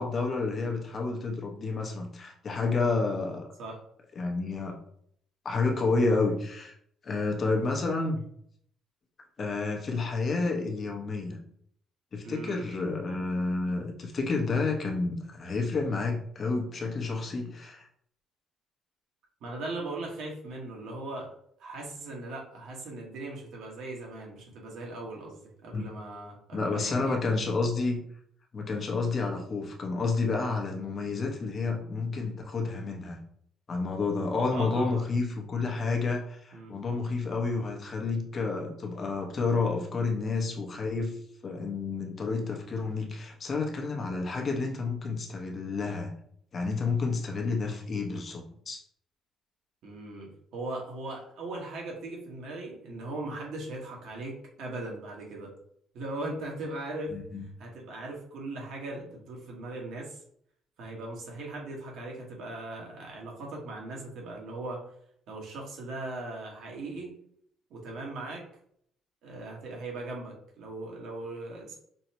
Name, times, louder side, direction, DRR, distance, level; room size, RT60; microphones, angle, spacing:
voice 1, 0.0-3.5 4.2-4.8 5.4-6.7 7.0-8.2 9.4-11.4 12.1-17.9 25.7-25.9 26.5-28.0 28.5-33.2 33.7-41.2 41.4-46.1 46.5-48.8 57.1-57.4, left 3 dB, 40° left, 1 dB, 0.8 m, -30 dB
voice 2, 12.2-12.6 19.4-21.3 21.6-27.2 34.5-35.1 36.5-36.7 49.8-55.5 55.9-57.1 57.6-60.2 60.8-64.8 65.3-67.1 67.7-68.4 69.2-71.8, right 2 dB, 75° right, -2 dB, 1.3 m, -39 dB
5.3 x 2.1 x 2.9 m, 0.66 s
cardioid pair, 115°, 0 cm